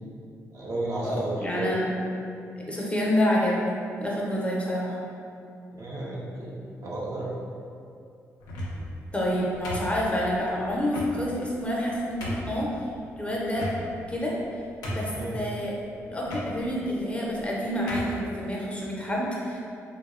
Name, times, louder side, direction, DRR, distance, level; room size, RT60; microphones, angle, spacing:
voice 1, 0.5-1.7 5.7-6.5 6.8-7.3 15.1-15.4, right 2 dB, 60° right, -6 dB, 0.6 m, -32 dB
voice 2, 1.0-1.9 2.6-3.7 4.0-5.0 9.1-12.7 13.2-13.7 14.1-14.3 14.9-15.7 16.1-19.6, equal, 20° left, -4 dB, 0.6 m, -28 dB
sound 1, 8.4-8.9 9.6-10.3 10.9-11.1 11.7-11.8 12.2-12.5 13.5-14.1 14.4-14.5 14.8-15.3 16.2-16.5 17.3-17.5 17.9-18.2, left 1 dB, 85° left, 0.4 m, -34 dB
2.7 x 2.0 x 2.4 m, 2.5 s
supercardioid pair, 55°, 6 cm